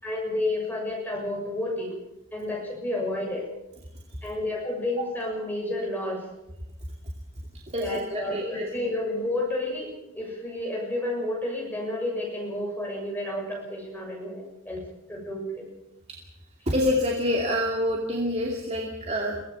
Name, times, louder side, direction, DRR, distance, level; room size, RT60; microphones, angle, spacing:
voice 1, 0.0-1.9 2.3-3.5 4.2-6.3 7.8-14.8 15.1-15.7, left 1 dB, 10° left, -1 dB, 7.0 m, -31 dB
voice 2, 7.7-8.7 16.7-19.4, left 1 dB, 30° right, 0 dB, 2.6 m, -26 dB
23.0 x 17.0 x 7.1 m, 0.91 s
head